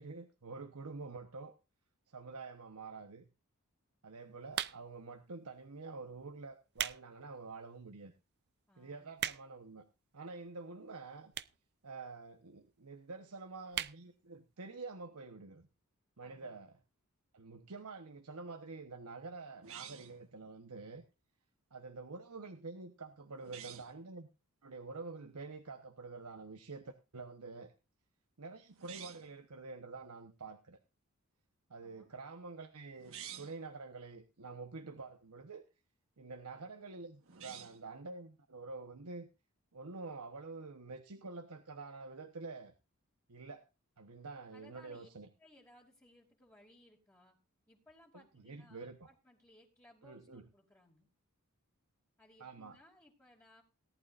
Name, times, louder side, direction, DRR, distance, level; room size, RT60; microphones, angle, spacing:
voice 1, 0.0-1.5 2.1-3.3 4.0-8.1 8.8-9.9 10.1-11.3 11.8-15.7 16.2-16.7 17.3-21.0 21.7-24.3 24.6-27.7 28.4-30.8 31.7-35.6 36.2-39.3 39.7-42.7 43.3-43.7 44.0-45.3 48.1-49.0 50.0-50.4 52.4-52.8, right 3 dB, 90° right, 6 dB, 1.1 m, -48 dB
sound 1, 4.5-5.1 5.8-6.0 6.5-7.0 7.5-7.6 8.2-8.3 8.5-8.6 8.8-9.7 10.5-10.6 11.3-11.7 12.0-12.1 12.2-12.3 12.6-12.7 13.0-13.2 13.7-14.0 14.4-14.5 14.7-14.8, right 11 dB, 50° right, 0.6 m, -38 dB
voice 2, 8.7-9.1 16.2-16.6 31.8-32.1 44.5-45.1 45.4-47.4 47.7-51.1 52.2-53.6, left 1 dB, 15° left, -4 dB, 2.5 m, -63 dB
sound 2, 19.6-20.2 23.4-23.9 28.7-29.4 33.0-33.6 37.2-37.9, right 9 dB, 65° right, 1.5 m, -50 dB
18.5 x 11.5 x 2.6 m, 0.29 s
head